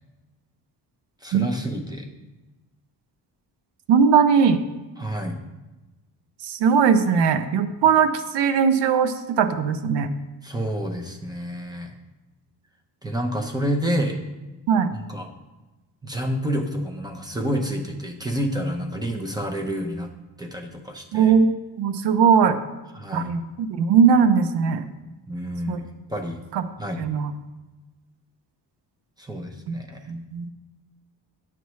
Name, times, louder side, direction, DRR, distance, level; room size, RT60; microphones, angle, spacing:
voice 1, 1.2-2.1 5.0-5.4 10.4-11.9 13.0-14.2 14.9-15.3 16.0-20.1 20.4-21.3 22.9-23.3 25.3-26.4 26.8-27.1 29.2-30.1, equal, 10° right, 2 dB, 0.7 m, -29 dB
voice 2, 3.9-4.6 6.4-10.1 14.7-14.9 21.1-21.5 21.8-22.6 23.1-24.8 25.7-25.8 26.5-26.6 27.0-27.3 29.7-29.8 30.1-30.5, right 6 dB, 80° right, 9 dB, 0.6 m, -19 dB
9.1 x 5.9 x 3.1 m, 1.1 s
wide cardioid pair, 155°, 41 cm